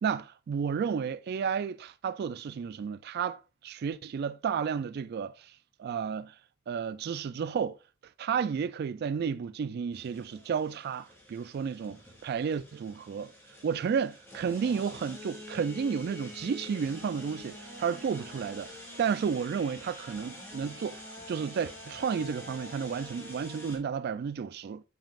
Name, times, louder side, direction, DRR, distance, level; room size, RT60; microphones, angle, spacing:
voice 1, 0.0-6.4 6.7-7.8 8.2-13.3 13.6-18.7 19.0-24.8, right 6 dB, 55° right, 0.3 m, -32 dB
sound 1, 9.9-23.8, left 1 dB, 15° left, 3.8 m, -47 dB
7.6 x 7.3 x 2.4 m
head